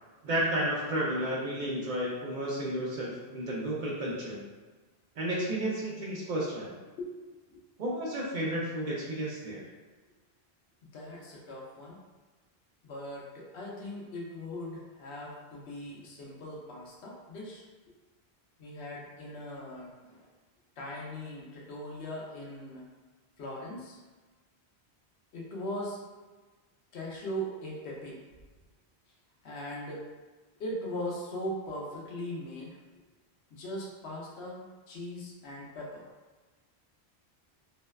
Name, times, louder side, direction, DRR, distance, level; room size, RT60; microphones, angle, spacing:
voice 1, 0.2-4.4 5.2-6.7 7.8-9.6, right 1 dB, 60° right, -4 dB, 0.6 m, -32 dB
voice 2, 10.8-12.0 12.8-17.6 18.6-20.3 20.8-22.9 23.4-24.0 25.3-26.0 26.9-28.2 29.4-30.1 30.6-32.7 33.5-36.1, equal, 80° left, -3 dB, 0.9 m, -39 dB
2.6 x 2.1 x 2.2 m, 1.3 s
omnidirectional pair, 1.1 m